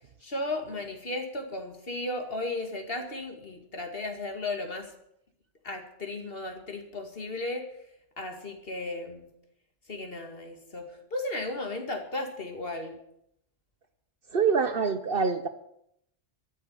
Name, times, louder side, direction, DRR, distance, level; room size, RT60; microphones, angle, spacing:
voice 1, 0.2-4.9 5.6-7.7 8.2-9.3 9.9-13.0, left 2 dB, 50° left, 4 dB, 2.4 m, -35 dB
voice 2, 14.3-15.5, right 5 dB, 50° right, 10 dB, 1.0 m, -25 dB
13.5 x 7.9 x 9.5 m, 0.76 s
omnidirectional pair, 1.3 m